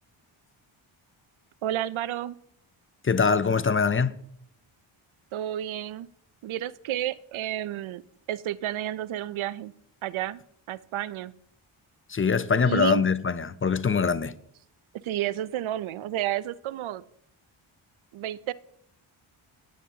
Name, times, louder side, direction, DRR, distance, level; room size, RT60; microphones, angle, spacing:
voice 1, 1.6-2.4 5.3-6.1 6.4-8.0 8.3-9.7 10.0-10.4 10.7-11.3 12.6-13.0 14.9-17.0 18.1-18.5, right 12 dB, 70° right, 0.6 m, -31 dB
voice 2, 3.0-4.2 12.1-14.3, left 5 dB, 25° left, 0.5 m, -23 dB
17.0 x 9.3 x 2.8 m
cardioid pair, 85°, 50 cm